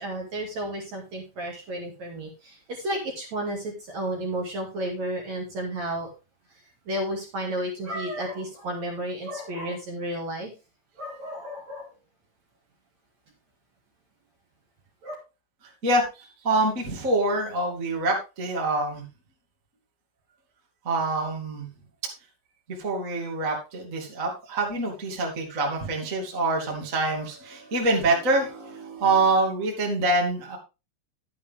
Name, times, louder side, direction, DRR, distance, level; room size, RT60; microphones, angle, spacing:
voice 1, 0.0-6.1 6.5-10.5 11.0-11.9 15.0-15.1, right 1 dB, 45° right, 1 dB, 2.6 m, -32 dB
voice 2, 15.8-19.0 20.8-21.7 22.8-30.6, right 2 dB, 30° right, -1 dB, 1.4 m, -25 dB
11.5 x 8.5 x 3.5 m, 0.28 s
omnidirectional pair, 5.8 m